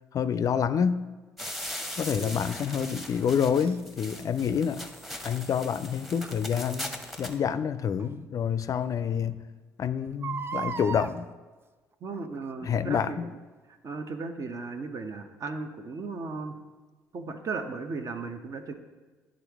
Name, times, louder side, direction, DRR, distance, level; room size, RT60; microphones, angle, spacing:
voice 1, 0.1-1.0 1.9-4.9 5.2-9.4 9.8-11.3 12.6-13.3, left 7 dB, 50° left, 12 dB, 0.4 m, -28 dB
sound 1, 1.4-7.4, left 1 dB, ahead, 1.0 m, -39 dB
Crying sobbing, 3.6-3.8 6.2-6.4 8.0-8.1 8.6-8.7 8.9-9.0 10.1-11.1 12.1-12.4 13.0-13.1, right 6 dB, 30° right, 0.3 m, -35 dB
voice 2, 12.0-13.4 13.8-16.6 17.1-18.7, right 4 dB, 50° right, 7 dB, 0.8 m, -36 dB
10.0 x 3.8 x 3.5 m, 1.3 s
hypercardioid pair, 55°, 7 cm